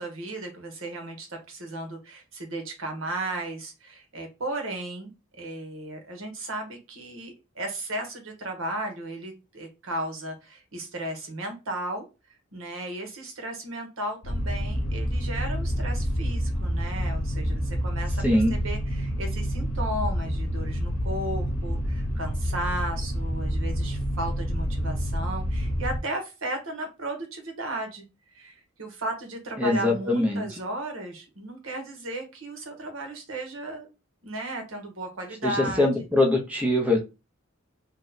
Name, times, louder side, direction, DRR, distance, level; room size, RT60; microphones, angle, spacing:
voice 1, 0.0-12.1 12.5-28.0 28.3-33.9 34.2-35.9, right 1 dB, 75° right, 4 dB, 1.1 m, -35 dB
sound 1, 14.2-26.0, equal, 85° left, 0.7 m, -28 dB
voice 2, 18.2-18.5 29.6-30.5 35.4-37.0, left 2 dB, 5° right, 1 dB, 0.5 m, -22 dB
3.0 x 2.1 x 3.9 m, 0.28 s
head